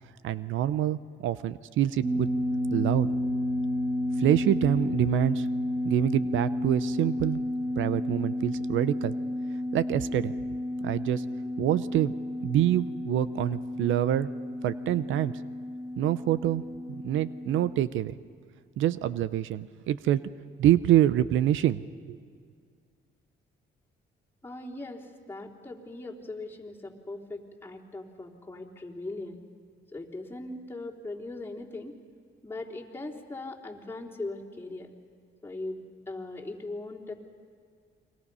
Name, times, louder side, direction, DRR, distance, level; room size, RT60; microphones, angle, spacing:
voice 1, 0.2-2.3 2.7-3.1 4.2-5.5 5.8-7.4 7.8-9.1 9.7-10.3 10.8-11.2 11.6-12.1 12.4-14.3 14.6-15.3 16.0-16.6 16.9-18.1 18.8-20.2 20.6-21.8 22.1-22.2, right 12 dB, 80° right, 15 dB, 0.7 m, -26 dB
sound 1, 2.0-17.8, left 1 dB, 60° right, 5.9 m, -31 dB
voice 2, 24.4-29.4 29.9-32.0 32.4-34.9 35.4-37.1, left 2 dB, 10° left, -3 dB, 3.5 m, -39 dB
30.0 x 23.5 x 5.5 m, 2.1 s
cardioid pair, 90°, 20 cm